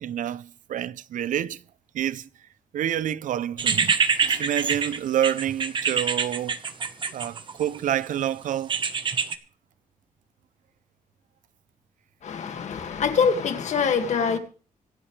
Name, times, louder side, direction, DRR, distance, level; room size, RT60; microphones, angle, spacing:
voice 1, 0.0-1.6 1.9-2.3 2.7-6.6 7.1-8.8, right 11 dB, 65° right, 0.5 m, -28 dB
sound 1, 3.6-7.8 8.7-9.4, right 6 dB, 35° right, 1.0 m, -25 dB
voice 2, 12.2-14.4, left 6 dB, 55° left, 2.0 m, -24 dB
26.0 x 8.7 x 3.3 m
wide cardioid pair, 170°, 14 cm